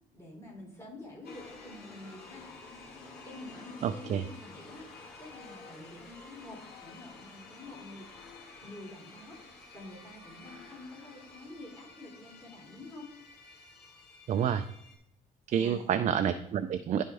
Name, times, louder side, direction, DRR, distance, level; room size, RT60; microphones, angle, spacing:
voice 1, 0.1-2.5 2.7-8.1 8.6-13.1 15.5-16.0, left 2 dB, 15° left, -2 dB, 3.3 m, -48 dB
sound 1, 1.2-15.0, left 3 dB, 70° left, 2.3 m, -51 dB
voice 2, 3.8-4.2 14.3-14.6 15.5-17.0, right 8 dB, 45° right, 9 dB, 0.4 m, -28 dB
11.0 x 4.3 x 3.5 m, 0.78 s
cardioid pair, 110°, 17 cm